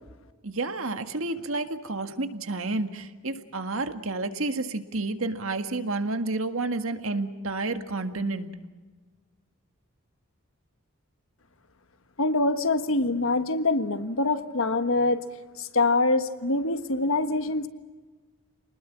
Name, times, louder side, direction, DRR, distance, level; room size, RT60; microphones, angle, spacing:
voice 1, 0.4-8.5, right 2 dB, 70° right, 8 dB, 1.8 m, -30 dB
voice 2, 12.2-15.2 15.6-17.7, left 2 dB, 70° left, 9 dB, 1.4 m, -24 dB
28.5 x 20.0 x 7.4 m, 1.3 s
head